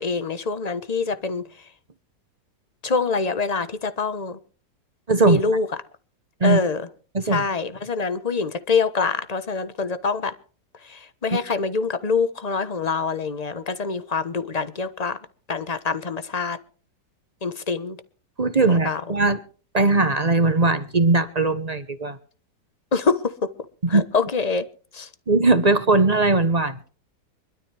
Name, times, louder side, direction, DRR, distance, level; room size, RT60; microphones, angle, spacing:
voice 1, 0.0-1.4 2.8-4.4 5.2-5.7 6.4-6.9 7.2-10.3 10.8-15.2 15.5-16.6 17.4-18.0 18.7-19.0 22.9-23.3 23.9-24.6 24.9-25.1, left 4 dB, 25° left, 1.0 m, -25 dB
voice 2, 5.1-5.4 6.4-6.6 7.1-7.4 18.4-19.4 19.7-22.2 23.9-24.0 25.3-26.9, right 3 dB, 30° right, 1.0 m, -19 dB
24.0 x 13.0 x 3.4 m
omnidirectional pair, 1.8 m